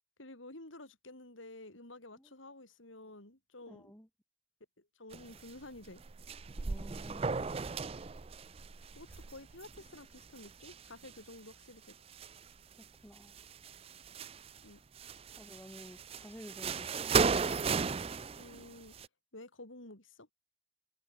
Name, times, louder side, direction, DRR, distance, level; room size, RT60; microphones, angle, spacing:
voice 1, 0.2-3.9 4.8-6.0 8.9-12.0 14.6-14.8 18.4-18.9 19.3-20.3, left 2 dB, 80° left, 4.9 m, -51 dB
voice 2, 3.7-4.1 6.6-7.6 12.8-13.3 15.4-17.6, equal, 10° left, 6.2 m, -52 dB
sound 1, 5.1-5.6 5.8-11.3 11.9-12.8 13.2-14.6 15.0-19.1, right 5 dB, 30° right, 0.4 m, -36 dB
head